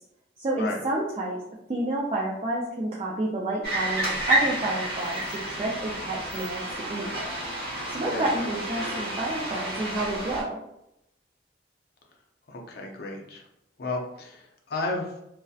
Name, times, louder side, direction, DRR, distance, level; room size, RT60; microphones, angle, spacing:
voice 1, 0.4-1.4 1.7-7.1 7.9-10.6, right 1 dB, 30° right, -4 dB, 0.3 m, -29 dB
sound 1, 3.6-10.4, right 1 dB, 55° right, 0.9 m, -30 dB
voice 2, 12.5-13.4 13.8-15.1, left 2 dB, 55° left, 0 dB, 0.5 m, -33 dB
2.6 x 2.0 x 2.3 m, 0.82 s
head